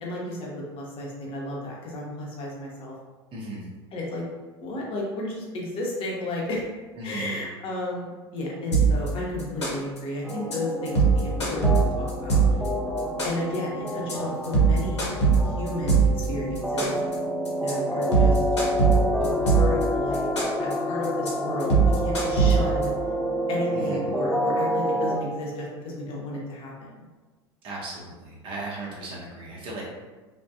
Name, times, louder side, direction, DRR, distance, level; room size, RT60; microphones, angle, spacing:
voice 1, 0.0-2.9 3.9-4.2 4.6-6.6 7.0-12.4 13.2-15.0 15.4-16.0 16.3-16.9 17.6-18.4 19.2-20.3 20.6-22.9 23.5-27.1, left 2 dB, 40° left, -3 dB, 0.8 m, -33 dB
voice 2, 3.3-3.6 7.0-7.4 23.7-24.0 27.6-29.8, right 2 dB, 35° right, -4 dB, 0.7 m, -36 dB
sound 1, 8.7-9.1 9.4-10.0 10.3-10.5 10.9-12.7 13.0-13.6 13.9-14.1 14.4-16.2 16.6-17.1 17.4-17.7 18.0-19.8 20.1-20.7 21.0-21.3 21.6-22.8, right 5 dB, 85° left, 0.7 m, -20 dB
sound 2, 10.2-25.2, equal, ahead, 0.4 m, -28 dB
2.4 x 2.2 x 2.4 m, 1.3 s
hypercardioid pair, 80°, 14 cm